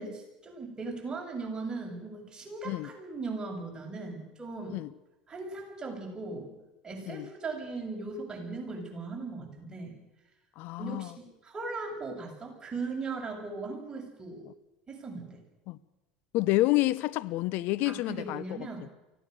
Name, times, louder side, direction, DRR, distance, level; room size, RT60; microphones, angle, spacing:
voice 1, 0.0-4.8 5.3-6.5 6.8-10.0 10.8-14.5 14.9-15.4 17.9-18.9, right 3 dB, 20° right, 7.8 m, -38 dB
voice 2, 10.6-11.1 15.7-15.8 16.3-18.4, left 18 dB, 55° left, 1.0 m, -28 dB
24.0 x 17.5 x 6.9 m
hypercardioid pair, 80°, 4 cm